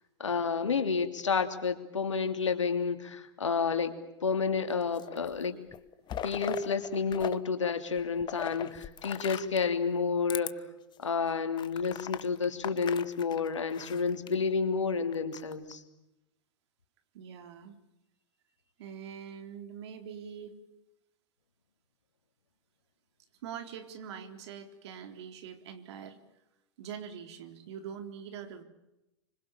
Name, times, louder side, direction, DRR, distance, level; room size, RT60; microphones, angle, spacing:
voice 1, 0.2-3.9 4.2-5.5 6.2-10.6 11.0-15.8, left 5 dB, 90° left, 8 dB, 3.0 m, -30 dB
sound 1, 4.7-5.4 5.7-7.4 7.6-9.7 10.2-10.5 11.0-11.1 11.5-14.3 15.1-15.7, left 10 dB, 30° left, 1.3 m, -40 dB
voice 2, 17.1-17.8 18.8-20.6 23.4-26.2 26.8-28.6, right 8 dB, 65° right, 8 dB, 3.9 m, -43 dB
26.5 x 25.0 x 7.3 m, 0.93 s
hypercardioid pair, 100°, 15 cm